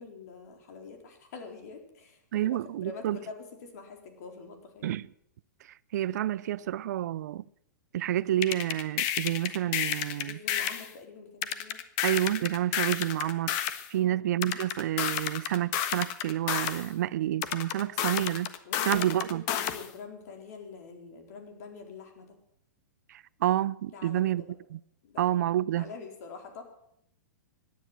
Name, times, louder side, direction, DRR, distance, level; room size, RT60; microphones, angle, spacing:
voice 1, 0.0-4.9 10.2-11.8 13.9-14.2 18.6-22.4 23.9-24.5 25.0-25.3 25.7-26.6, left 5 dB, 60° left, 4.2 m, -45 dB
voice 2, 2.3-3.2 4.8-5.1 5.9-7.4 7.9-10.4 12.0-13.5 13.9-18.5 18.9-19.4 23.1-24.4 24.7-24.8 25.2-25.9, right 12 dB, 60° right, 0.5 m, -29 dB
sound 1, 8.4-10.9 11.4-13.9 14.4-16.9 17.4-19.9, left 10 dB, 40° left, 1.4 m, -31 dB
17.0 x 10.5 x 7.5 m
hypercardioid pair, 125°, 10 cm